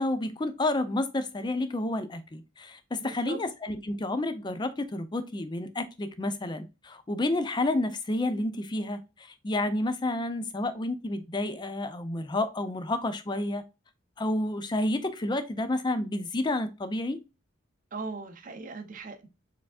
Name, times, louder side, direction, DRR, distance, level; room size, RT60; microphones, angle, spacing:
voice 1, 0.0-13.6 14.2-17.2, left 2 dB, 20° left, 0.4 m, -30 dB
voice 2, 3.0-3.4 17.9-19.3, right 4 dB, 40° right, 0.6 m, -39 dB
4.6 x 3.5 x 2.4 m
head